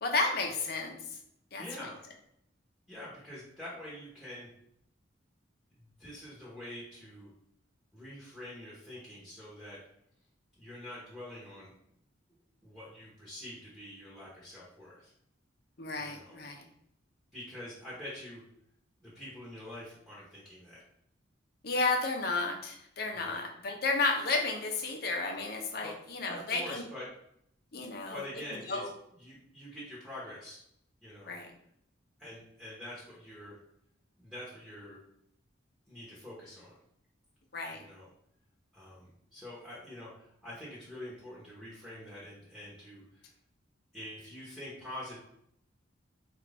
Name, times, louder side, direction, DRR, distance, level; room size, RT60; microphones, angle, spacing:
voice 1, 0.0-0.9 1.5-1.6 15.8-16.6 21.6-26.8 27.7-28.2 28.7-28.9 31.3-31.5 37.5-37.8, left 3 dB, 50° left, 2 dB, 0.7 m, -32 dB
voice 2, 1.6-2.0 2.9-4.5 6.0-7.3 7.9-9.8 10.6-11.7 12.6-15.1 16.0-16.4 17.3-18.4 19.0-20.8 23.1-23.5 25.8-26.0 26.3-27.1 27.7-27.8 28.1-28.9 29.2-30.6 31.0-31.3 32.2-33.6 34.2-35.0 35.9-36.7 37.7-38.1 38.7-43.3 43.9-45.2, left 1 dB, 5° right, -9 dB, 1.0 m, -46 dB
4.7 x 2.5 x 3.3 m, 0.73 s
head